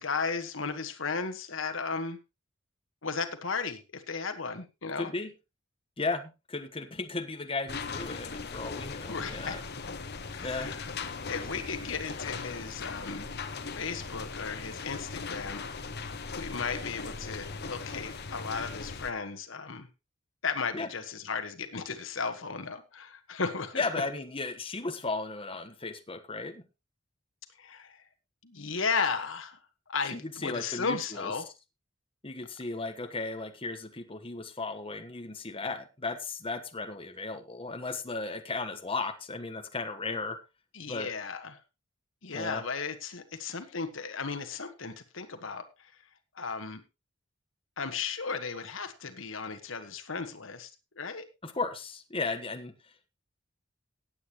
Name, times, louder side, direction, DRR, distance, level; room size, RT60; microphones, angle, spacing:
voice 1, 0.0-2.2 3.0-5.1 9.1-9.6 10.3-10.9 11.3-13.3 13.7-15.7 16.3-19.9 20.4-23.8 27.6-28.0 28.4-29.6 29.9-31.5 40.7-41.6 42.2-45.9 46.3-46.8 47.8-50.7 51.0-51.2, left 5 dB, 75° left, 8 dB, 1.5 m, -35 dB
voice 2, 5.0-5.3 6.0-9.6 10.4-10.7 20.7-20.9 23.7-26.6 30.1-31.3 32.2-40.4 40.9-41.1 42.3-42.6 51.4-53.1, left 3 dB, 25° left, 6 dB, 1.3 m, -35 dB
sound 1, 7.7-19.1, left 4 dB, 55° left, 1.2 m, -39 dB
17.5 x 8.7 x 3.1 m, 0.26 s
head